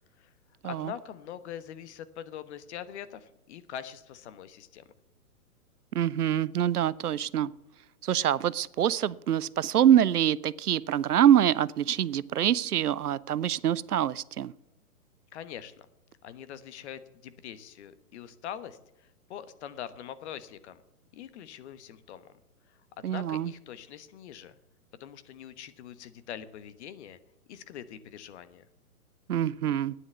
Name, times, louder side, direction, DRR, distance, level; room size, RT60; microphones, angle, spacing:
voice 1, 0.7-4.8 15.3-15.9 16.2-20.8 21.1-22.3 22.7-24.6 25.0-27.2 27.5-28.7, left 9 dB, 50° left, 14 dB, 1.2 m, -43 dB
voice 2, 5.9-7.5 8.0-14.5 23.0-23.5 29.3-29.9, right 10 dB, 85° right, 20 dB, 0.7 m, -25 dB
11.0 x 9.7 x 8.1 m, 0.89 s
hypercardioid pair, 130°, 45 cm